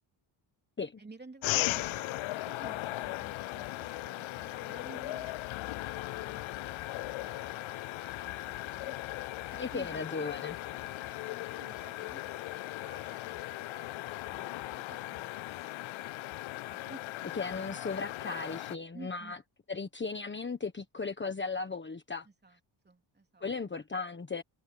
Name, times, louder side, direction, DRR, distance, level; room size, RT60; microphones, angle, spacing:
voice 1, 1.0-5.3 5.6-7.7 8.2-8.9 9.4-10.0 10.7-12.3 12.8-16.0 16.6-17.3 18.9-19.4 22.2-22.6 22.8-23.5, right 3 dB, 20° right, 3.6 m, -54 dB
sound 1, 1.4-18.8, left 18 dB, 75° left, 0.5 m, -38 dB
sound 2, 1.5-13.5, right 10 dB, 75° right, 5.4 m, -64 dB
voice 2, 9.5-10.6 17.3-19.4 19.7-22.3 23.4-24.4, left 4 dB, 25° left, 1.4 m, -36 dB
cardioid pair, 130°, 48 cm